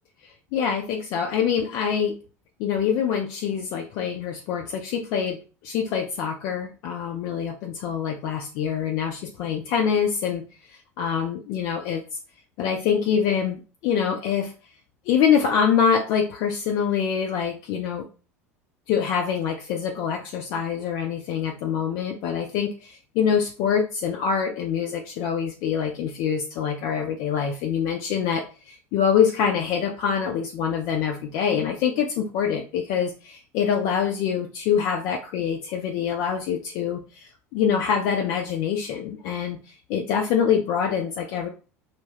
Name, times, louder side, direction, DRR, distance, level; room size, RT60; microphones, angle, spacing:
voice 1, 0.2-2.2 2.6-12.0 12.6-14.5 15.1-18.1 18.9-41.5, left 7 dB, 50° left, 2 dB, 0.4 m, -25 dB
2.2 x 2.2 x 3.3 m, 0.35 s
figure-of-eight pair, 70°, 8 cm